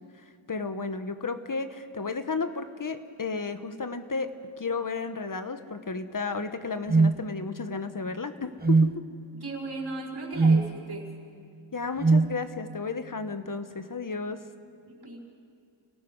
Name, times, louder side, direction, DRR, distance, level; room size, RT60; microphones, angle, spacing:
voice 1, 0.5-4.3 4.6-8.5 11.7-14.4, left 4 dB, 40° left, 9 dB, 1.3 m, -33 dB
sound 1, 6.9-7.2 8.6-8.9 10.4-10.7 12.0-12.3, right 3 dB, 20° right, 0.6 m, -20 dB
voice 2, 9.4-11.1 14.9-15.2, right 3 dB, 50° right, -2 dB, 5.1 m, -36 dB
30.0 x 18.0 x 5.5 m, 2.4 s
wide cardioid pair, 90°, 50 cm